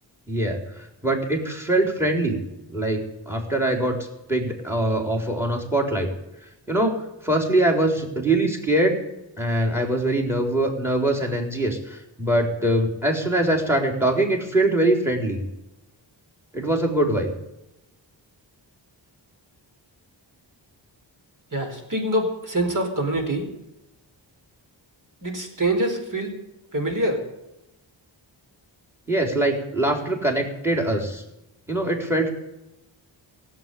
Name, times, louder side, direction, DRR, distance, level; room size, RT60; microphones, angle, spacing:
voice 1, 0.3-2.4 2.7-4.0 4.3-6.1 6.7-9.0 9.4-15.4 16.5-17.3 29.1-31.2 31.7-32.3, right 1 dB, 5° right, 3 dB, 4.0 m, -23 dB
voice 2, 21.5-23.5 25.2-26.3 26.7-27.2, right 1 dB, 40° right, 4 dB, 4.4 m, -25 dB
17.0 x 8.4 x 9.2 m, 0.92 s
wide cardioid pair, 85°, 46 cm